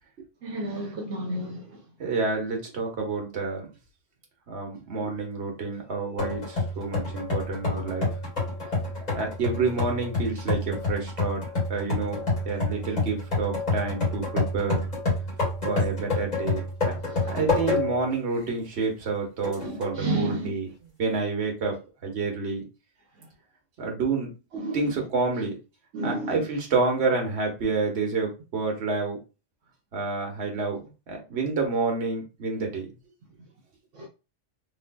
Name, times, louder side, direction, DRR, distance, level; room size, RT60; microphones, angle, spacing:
voice 1, 0.4-1.6 17.0-17.3 19.6-20.5 24.5-24.9 25.9-26.4 33.9-34.1, right 2 dB, 80° right, 1.1 m, -31 dB
voice 2, 2.0-3.7 4.5-8.1 9.1-11.4 11.7-12.2 12.4-14.8 15.6-17.0 17.2-21.8 22.0-22.6 23.8-24.3 24.7-25.5 26.0-29.2 29.9-30.8 31.1-32.9, right 4 dB, 65° right, 1.3 m, -29 dB
sound 1, 6.2-18.1 18.6-18.7 19.4-20.0, left 3 dB, 35° left, 1.8 m, -28 dB
3.3 x 3.1 x 2.2 m
omnidirectional pair, 1.2 m